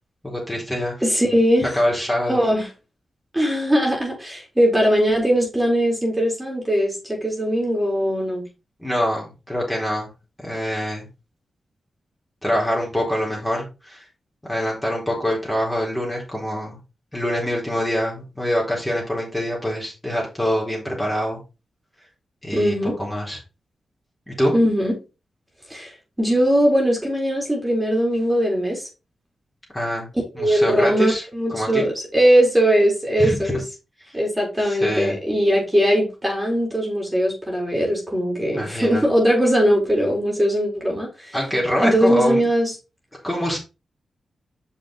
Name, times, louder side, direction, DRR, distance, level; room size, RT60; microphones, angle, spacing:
voice 1, 0.2-1.0 1.6-2.4 8.8-10.1 10.4-11.1 12.4-14.1 14.4-16.8 17.1-21.4 22.4-23.4 24.3-24.5 29.7-30.1 30.3-31.2 31.5-31.9 33.2-33.4 34.6-35.2 38.4-39.0 41.3-42.5 43.2-43.6, equal, 10° left, 4.0 m, -24 dB
voice 2, 1.0-1.7 2.3-2.7 3.3-8.4 22.5-23.0 24.5-24.9 25.7-25.9 26.2-28.8 30.4-33.6 34.1-41.3 41.8-42.7, equal, 15° right, 4.1 m, -20 dB
6.3 x 5.9 x 4.3 m
cardioid pair, 65°, 0 cm